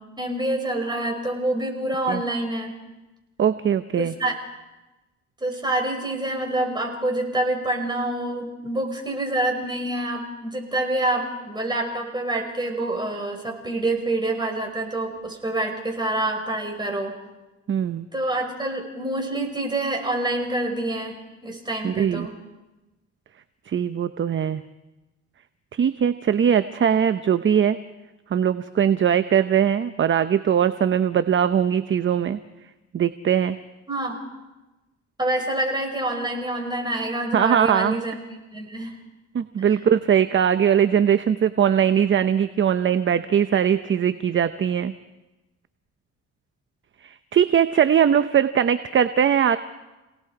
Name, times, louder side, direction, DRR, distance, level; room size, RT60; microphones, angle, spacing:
voice 1, 0.0-2.8 4.0-4.4 5.4-17.1 18.1-22.3 33.9-34.2 35.2-38.2 38.5-39.0 39.6-39.7, right 1 dB, 15° right, 2 dB, 5.6 m, -27 dB
voice 2, 3.4-4.1 17.7-18.1 21.8-22.3 23.7-24.6 25.7-27.8 28.3-32.4 32.9-33.6 37.3-38.0 39.3-44.9 47.0-49.6, right 8 dB, 40° right, 12 dB, 0.7 m, -20 dB
29.0 x 18.5 x 4.8 m, 1.1 s
cardioid pair, 90°, 30 cm